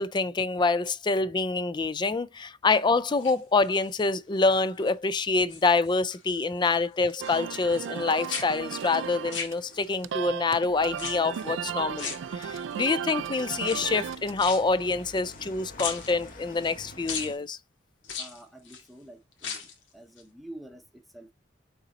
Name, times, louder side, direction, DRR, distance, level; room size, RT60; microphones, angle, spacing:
voice 1, 0.0-17.6, left 3 dB, 25° left, 0.4 m, -26 dB
sound 1, 3.0-4.0 4.5-4.9 5.2-6.2 6.5-8.0 8.3-10.1 10.9-11.5 12.0-12.8 13.5-15.5 15.8-16.7 17.1-17.3 18.0-18.9 19.3-19.8 20.2-20.3, left 6 dB, 85° left, 1.9 m, -38 dB
sound 2, 7.2-14.4, right 8 dB, 90° right, 0.4 m, -35 dB
sound 3, 10.7-17.3, left 1 dB, 45° left, 1.5 m, -49 dB
voice 2, 18.2-19.7 19.9-21.3, right 1 dB, ahead, 0.8 m, -47 dB
6.7 x 4.0 x 4.1 m
head